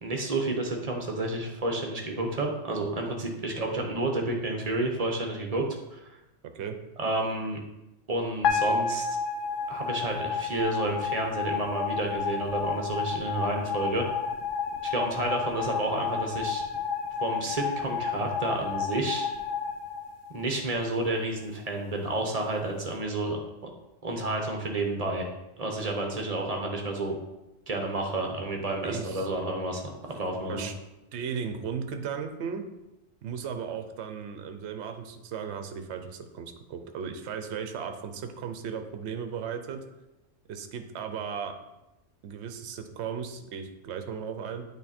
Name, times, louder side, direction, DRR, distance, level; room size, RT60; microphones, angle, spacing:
voice 1, 0.0-5.6 5.9-6.1 7.0-7.6 8.1-9.2 9.7-14.1 14.8-16.6 17.2-19.3 20.3-23.4 24.0-25.3 25.6-27.2 27.7-29.8 30.1-30.6, right 2 dB, 35° right, 2 dB, 0.9 m, -30 dB
sound 1, 8.4-20.7, left 5 dB, 75° left, 1.1 m, -31 dB
voice 2, 28.8-29.3 29.9-30.0 30.5-30.7 31.1-32.7 33.2-39.8 40.5-41.5 42.2-44.7, right 7 dB, 65° right, 7 dB, 0.9 m, -36 dB
8.8 x 3.4 x 4.2 m, 0.95 s
omnidirectional pair, 1.3 m